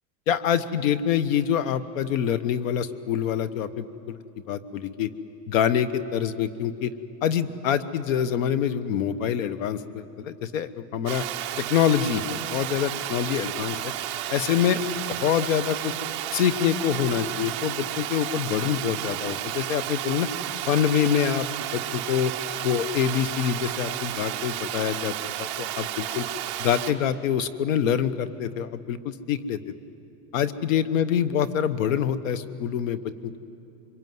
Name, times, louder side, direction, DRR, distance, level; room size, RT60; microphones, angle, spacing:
voice 1, 0.3-4.2 4.5-5.1 5.5-6.9 7.2-11.2 11.6-13.9 14.3-14.8 15.1-15.9 16.3-20.3 20.7-22.3 22.6-26.2 26.6-29.7 30.3-33.4, left 9 dB, 55° left, 15 dB, 1.1 m, -25 dB
Water, 11.1-26.9, right 12 dB, 20° right, 0.5 m, -32 dB
25.0 x 22.5 x 9.4 m, 2.7 s
supercardioid pair, 180°, 49 cm